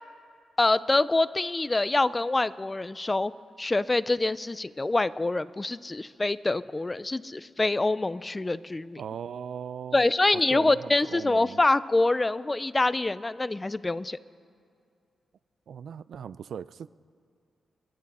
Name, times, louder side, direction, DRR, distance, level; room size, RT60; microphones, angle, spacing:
voice 1, 0.6-3.3 3.6-9.0 9.9-14.2, left 2 dB, 20° left, 17 dB, 0.4 m, -25 dB
voice 2, 9.0-10.0 10.5-11.6 15.7-16.9, right 8 dB, 70° right, 18 dB, 0.3 m, -38 dB
28.0 x 11.0 x 4.2 m, 2.4 s
cardioid pair, 110°, 0 cm